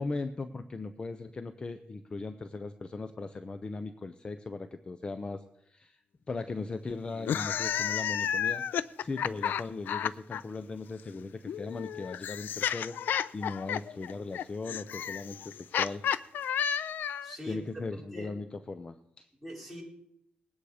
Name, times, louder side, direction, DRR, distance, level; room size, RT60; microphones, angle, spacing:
voice 1, 0.0-16.0 17.5-19.3, left 3 dB, 30° left, 10 dB, 0.6 m, -38 dB
sound 1, 7.2-10.4 11.5-17.3, left 9 dB, 85° left, 0.4 m, -32 dB
voice 2, 17.2-17.9 18.1-18.3 19.4-19.8, equal, ahead, -2 dB, 4.5 m, -42 dB
20.0 x 9.4 x 5.0 m, 0.79 s
wide cardioid pair, 125°, 3 cm